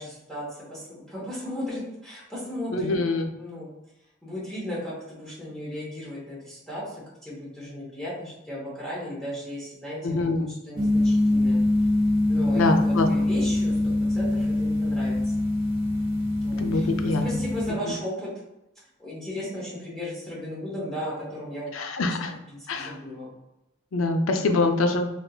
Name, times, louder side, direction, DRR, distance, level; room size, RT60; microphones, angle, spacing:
voice 1, 0.0-3.7 4.2-11.6 12.3-15.2 16.4-18.3 19.0-21.7 22.1-22.2 22.5-23.3, left 1 dB, ahead, -7 dB, 0.9 m, -36 dB
voice 2, 2.7-3.3 10.0-10.5 12.5-13.1 16.6-17.2 21.7-22.3 22.7-22.9 23.9-25.1, left 3 dB, 75° left, 5 dB, 0.4 m, -24 dB
sound 1, 10.8-17.7, left 1 dB, 85° right, 0.7 m, -24 dB
3.5 x 2.8 x 2.3 m, 0.93 s
head